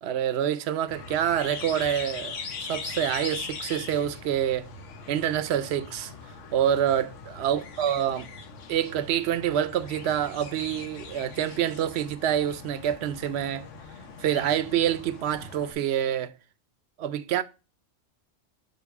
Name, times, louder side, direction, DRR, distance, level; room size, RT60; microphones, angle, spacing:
voice 1, 0.0-4.7 5.1-6.1 6.5-8.3 8.7-13.7 14.2-16.3 17.0-17.4, right 10 dB, 65° right, 0.7 m, -27 dB
sound 1, 0.9-15.7, left 5 dB, 65° left, 1.2 m, -41 dB
5.7 x 4.3 x 4.6 m
omnidirectional pair, 1.4 m